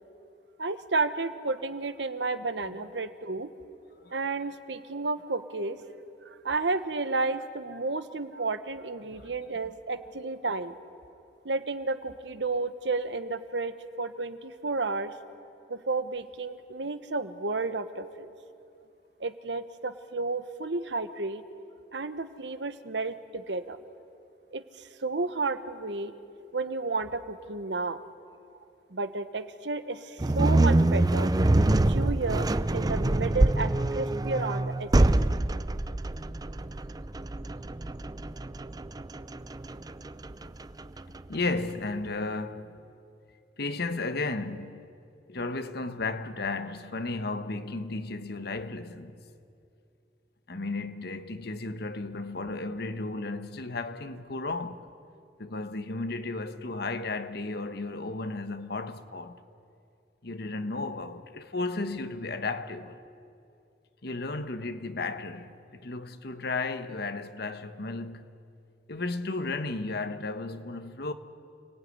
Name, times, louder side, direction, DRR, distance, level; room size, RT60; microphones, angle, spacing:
voice 1, 0.6-3.5 4.1-5.8 6.2-10.8 11.4-15.1 15.7-18.3 19.2-21.4 21.9-23.8 24.5-28.0 28.9-31.3 31.9-35.1, right 3 dB, 80° right, 1.3 m, -32 dB
sound 1, 30.2-41.3, right 1 dB, 20° right, 0.5 m, -25 dB
voice 2, 41.3-42.9 43.6-44.8 45.3-49.2 50.5-54.9 55.4-59.4 60.2-63.0 64.0-68.3 68.9-71.1, left 3 dB, 65° left, 1.2 m, -34 dB
29.0 x 19.0 x 9.7 m
head